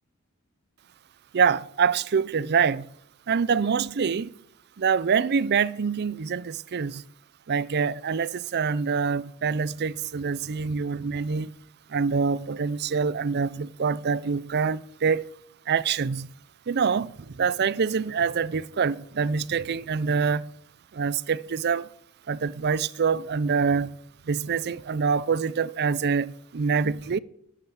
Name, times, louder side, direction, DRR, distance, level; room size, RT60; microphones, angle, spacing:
voice 1, 1.3-2.9 3.3-4.3 4.8-7.0 7.5-11.5 11.9-15.3 15.7-16.3 16.7-20.5 20.9-21.9 22.3-23.9 24.3-27.2, right 6 dB, 50° right, 0.5 m, -25 dB
11.5 x 9.9 x 8.6 m
head